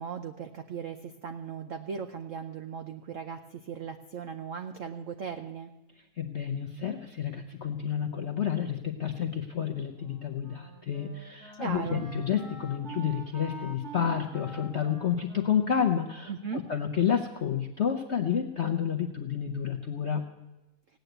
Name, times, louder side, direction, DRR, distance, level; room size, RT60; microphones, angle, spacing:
voice 1, 0.0-5.7 11.6-12.0 16.3-16.7, right 6 dB, 80° right, 8 dB, 0.7 m, -37 dB
voice 2, 6.2-20.2, left 8 dB, 65° left, 4 dB, 0.6 m, -30 dB
Wind instrument woodwind instrument, 9.9-17.1, right 4 dB, 35° right, 2.5 m, -46 dB
17.0 x 9.3 x 7.9 m, 1.0 s
omnidirectional pair, 2.2 m